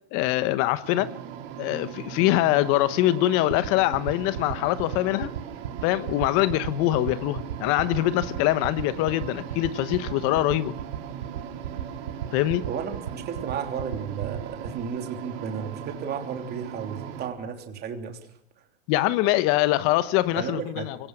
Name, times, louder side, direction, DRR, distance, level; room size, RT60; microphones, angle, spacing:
voice 1, 0.1-1.1 1.6-5.3 5.8-10.7 12.3-12.7 18.9-21.0, left 15 dB, 45° left, 1.1 m, -23 dB
sound 1, 0.8-17.3, right 9 dB, 45° right, 4.2 m, -39 dB
sound 2, 3.5-14.8, right 11 dB, 75° right, 2.0 m, -33 dB
voice 2, 12.6-18.2 20.4-21.0, right 7 dB, 30° right, 3.1 m, -33 dB
24.5 x 18.0 x 5.9 m
hypercardioid pair, 125°, 33 cm